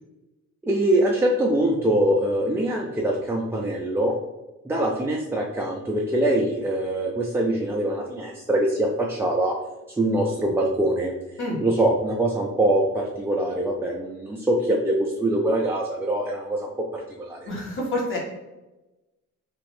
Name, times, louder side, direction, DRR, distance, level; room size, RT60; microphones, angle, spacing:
voice 1, 0.6-4.2 4.6-9.6 10.0-11.1 11.6-17.5, right 1 dB, 10° right, -1 dB, 0.3 m, -23 dB
voice 2, 17.5-18.2, left 1 dB, 40° left, -4 dB, 1.4 m, -27 dB
2.8 x 2.5 x 3.1 m, 1.1 s
cardioid pair, 90°, 30 cm